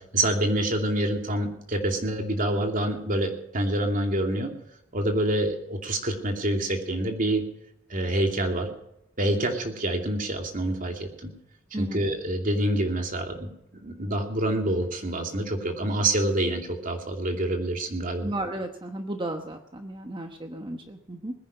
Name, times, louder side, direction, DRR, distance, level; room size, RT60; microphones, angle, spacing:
voice 1, 0.0-4.5 4.9-7.4 7.9-8.7 9.2-11.3 11.7-18.3, right 1 dB, 40° right, 4 dB, 2.6 m, -27 dB
voice 2, 18.2-21.3, right 1 dB, 25° right, 5 dB, 1.1 m, -34 dB
20.5 x 10.0 x 5.5 m, 0.79 s
head